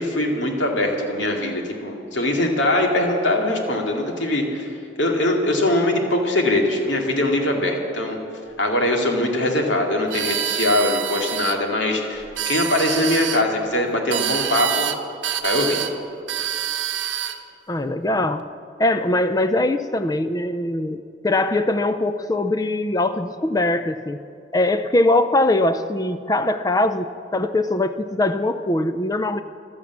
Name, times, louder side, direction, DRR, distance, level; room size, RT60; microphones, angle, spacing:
voice 1, 0.0-4.7 5.0-8.2 8.6-14.9 15.4-15.8, left 1 dB, 85° left, 1 dB, 2.3 m, -22 dB
sound 1, 10.1-11.6 12.2-13.4 14.1-15.0 15.2-15.9 16.3-17.4, right 10 dB, 75° right, 0.8 m, -26 dB
voice 2, 17.7-18.5 18.8-24.2 24.5-29.4, left 2 dB, 20° left, 10 dB, 0.4 m, -21 dB
15.5 x 12.0 x 7.3 m, 2.5 s
head